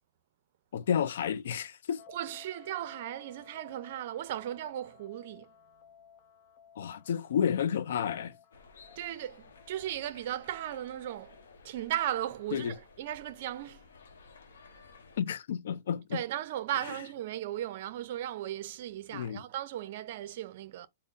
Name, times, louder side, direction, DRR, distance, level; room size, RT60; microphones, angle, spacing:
voice 1, 0.7-2.0 6.8-8.3 12.5-12.7 15.2-16.2 19.1-19.4, left 8 dB, 70° left, 0.4 m, -31 dB
sound 1, 2.0-11.6, left 7 dB, 35° left, 0.6 m, -57 dB
voice 2, 2.1-5.5 9.0-13.8 16.1-20.9, right 12 dB, 55° right, 0.5 m, -36 dB
sound 2, 8.5-15.2, left 4 dB, 85° left, 0.8 m, -56 dB
3.8 x 2.0 x 3.7 m
hypercardioid pair, 145°, 0 cm